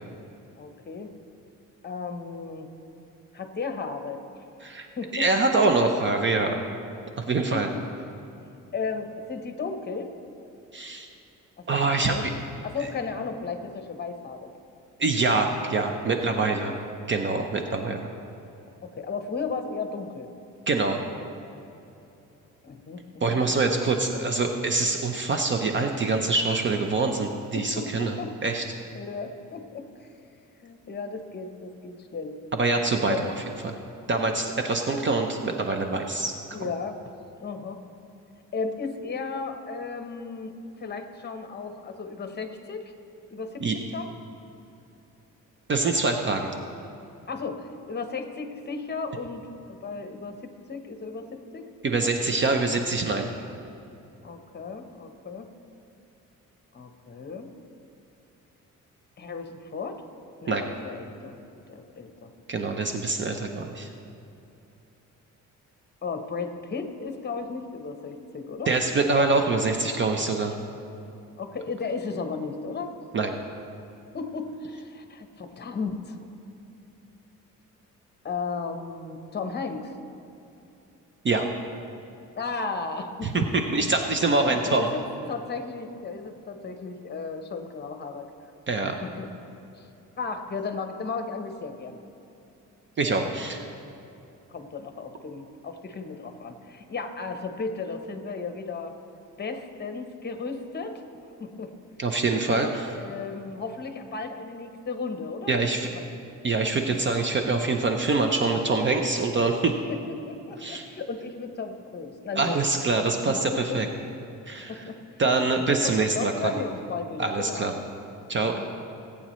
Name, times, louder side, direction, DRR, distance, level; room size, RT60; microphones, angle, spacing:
voice 1, 0.6-1.1 1.8-2.7 3.3-4.2 5.0-5.3 7.5-7.8 8.7-10.1 11.6-12.4 12.6-14.5 16.1-16.8 18.8-20.3 22.6-23.4 27.5-28.3 28.9-30.1 30.6-32.4 33.1-33.3 36.5-37.0 37.4-37.8 38.5-40.5 40.8-42.9 43.3-44.1 47.3-50.4 50.7-51.7 54.2-55.5 56.7-57.5 59.2-60.0 60.4-61.4 61.7-62.3 66.0-68.8 71.4-72.9 74.1-76.2 78.2-79.9 82.4-83.6 84.1-85.0 85.3-88.3 88.8-89.3 89.7-89.9 90.2-92.0 94.5-99.0 99.4-101.0 101.4-101.7 102.5-106.1 109.9-112.7 113.3-113.8 114.7-115.0 115.8-117.8 118.4-118.7, left 4 dB, 30° left, 7 dB, 1.0 m, -35 dB
voice 2, 5.1-6.6 7.2-7.7 10.7-11.1 11.7-12.1 12.8-12.9 15.0-16.7 17.1-18.1 20.7-21.0 23.2-28.2 28.4-28.7 32.6-33.3 33.6-33.7 34.1-36.4 43.6-43.8 45.7-46.5 51.8-53.3 60.5-60.6 62.5-63.9 68.7-70.5 73.1-73.3 81.2-81.5 83.2-84.9 88.7-89.0 93.0-93.7 102.0-102.9 105.5-105.9 106.4-109.8 110.6-110.8 112.4-113.9 114.5-114.7 115.2-116.5 117.2-117.7 118.3-118.6, right 3 dB, 35° right, 4 dB, 0.7 m, -25 dB
19.0 x 8.6 x 3.1 m, 2.8 s
cardioid pair, 120°, 31 cm